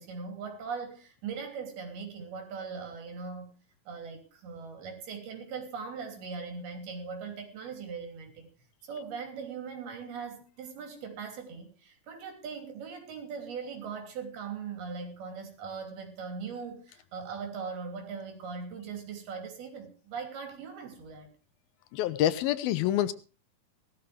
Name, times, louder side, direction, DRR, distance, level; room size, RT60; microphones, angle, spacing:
voice 1, 0.0-3.5 3.9-8.5 8.8-21.3, right 5 dB, 90° right, 4 dB, 5.1 m, -40 dB
voice 2, 21.9-23.1, left 12 dB, 80° left, 13 dB, 2.7 m, -26 dB
18.5 x 13.0 x 3.4 m, 0.35 s
omnidirectional pair, 4.3 m